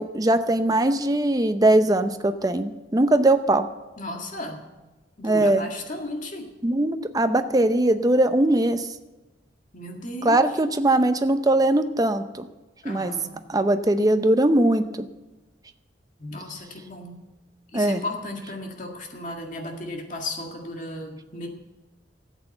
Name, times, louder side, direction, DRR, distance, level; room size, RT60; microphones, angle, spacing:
voice 1, 0.0-3.7 5.2-5.7 6.6-8.9 10.2-12.5 12.8-13.1 13.5-15.1 17.7-18.0, right 1 dB, 20° right, 9 dB, 0.6 m, -21 dB
voice 2, 4.0-4.6 5.2-6.5 9.7-10.4 12.8-13.4 16.2-17.3 17.7-21.5, left 1 dB, 45° left, 2 dB, 1.9 m, -35 dB
13.5 x 8.4 x 7.8 m, 1.1 s
head